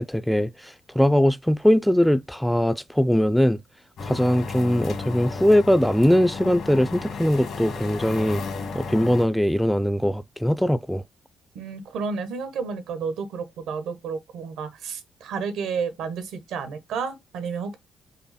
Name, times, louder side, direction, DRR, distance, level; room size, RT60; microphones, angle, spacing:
voice 1, 0.0-3.6 4.0-8.4 8.7-11.0, equal, ahead, 0.4 m, -21 dB
sound 1, 4.0-9.2, left 4 dB, 70° left, 1.4 m, -33 dB
voice 2, 11.5-17.8, right 5 dB, 85° right, 1.2 m, -31 dB
5.5 x 2.1 x 4.1 m
cardioid pair, 90°, 0 cm